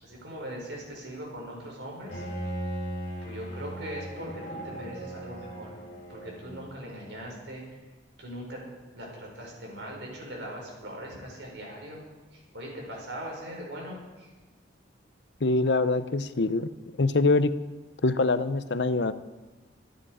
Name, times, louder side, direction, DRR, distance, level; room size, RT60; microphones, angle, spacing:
voice 1, 0.0-2.2 3.2-5.7 6.1-7.8 8.2-8.6 8.9-12.0 12.3-14.3, equal, 80° right, -1 dB, 5.8 m, -40 dB
Bowed string instrument, 2.1-6.9, right 1 dB, 45° left, 5.9 m, -38 dB
voice 2, 15.4-16.7 17.0-17.5 18.0-19.1, left 3 dB, 70° left, 13 dB, 0.7 m, -24 dB
25.5 x 10.0 x 4.9 m, 1.2 s
head